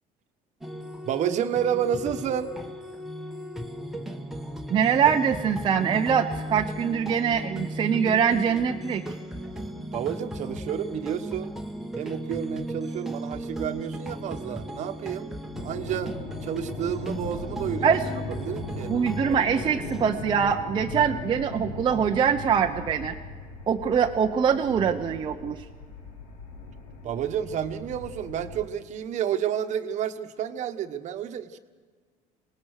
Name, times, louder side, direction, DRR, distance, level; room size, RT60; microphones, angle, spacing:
sound 1, 0.6-20.1, equal, ahead, 1.3 m, -36 dB
voice 1, 1.0-2.5 9.9-11.5 12.0-15.3 15.6-16.1 16.4-17.9 18.4-18.9 27.0-31.6, right 9 dB, 50° right, 8 dB, 1.2 m, -30 dB
voice 2, 4.7-9.0 17.8-18.0 18.9-23.1 23.7-25.6, right 7 dB, 30° right, 2 dB, 0.8 m, -23 dB
sound 2, 15.5-28.6, left 2 dB, 80° left, 4.9 m, -38 dB
25.5 x 19.0 x 6.6 m, 1.5 s
cardioid pair, 145°, 16 cm